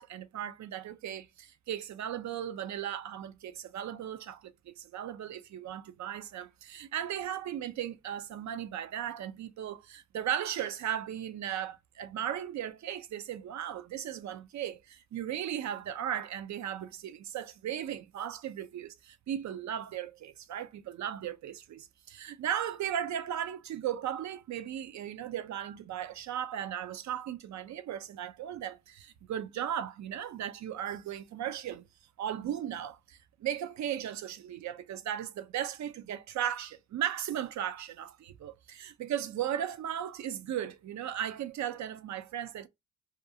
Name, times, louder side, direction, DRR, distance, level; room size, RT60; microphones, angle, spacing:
voice 1, 0.0-31.9 32.2-42.7, right 10 dB, 55° right, 0.5 m, -36 dB
2.4 x 2.3 x 2.6 m
supercardioid pair, 65°, 33 cm